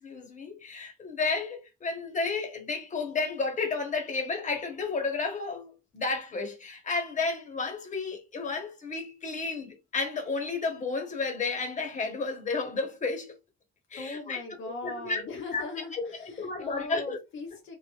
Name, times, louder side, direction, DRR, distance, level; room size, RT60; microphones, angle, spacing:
voice 1, 0.0-13.3 13.9-14.4 14.8-15.7 16.0-17.2, left 4 dB, 40° left, 1.1 m, -32 dB
voice 2, 14.0-17.8, left 3 dB, 80° left, 0.8 m, -40 dB
3.2 x 2.4 x 2.4 m
cardioid pair, 90°, 20 cm